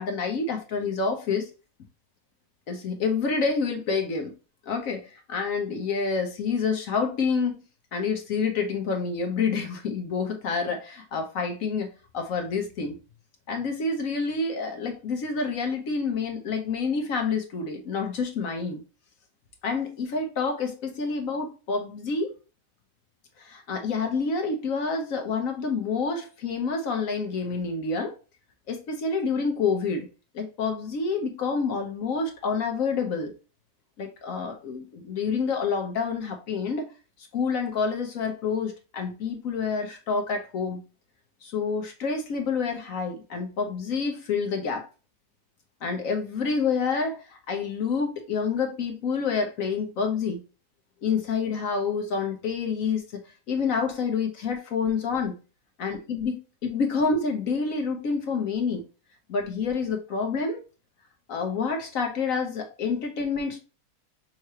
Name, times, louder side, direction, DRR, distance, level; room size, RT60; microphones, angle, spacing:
voice 1, 0.0-1.5 2.7-4.3 4.7-7.6 7.9-11.9 12.1-13.0 13.5-18.8 19.6-22.3 23.4-28.1 28.7-30.1 30.3-33.3 34.0-36.9 37.3-40.8 41.4-44.9 45.8-50.4 51.0-53.0 53.5-55.4 55.8-58.8 59.3-60.6 61.3-63.6, left 5 dB, 60° left, 0.9 m, -28 dB
5.7 x 3.1 x 2.8 m
omnidirectional pair, 2.2 m